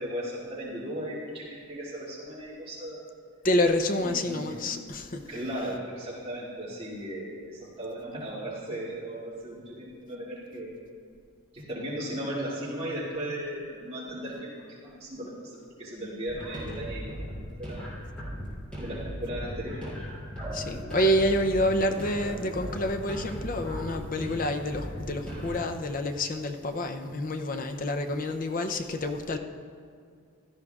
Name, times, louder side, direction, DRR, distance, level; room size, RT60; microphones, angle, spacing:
voice 1, 0.0-3.1 4.0-4.6 5.3-10.8 11.5-17.9 18.8-19.9, right 1 dB, 25° right, -8 dB, 2.4 m, -36 dB
voice 2, 3.4-5.7 20.5-29.4, left 1 dB, 40° left, 6 dB, 0.5 m, -28 dB
sound 1, 16.3-25.6, equal, 5° left, 3.1 m, -37 dB
16.0 x 12.5 x 2.4 m, 2.2 s
head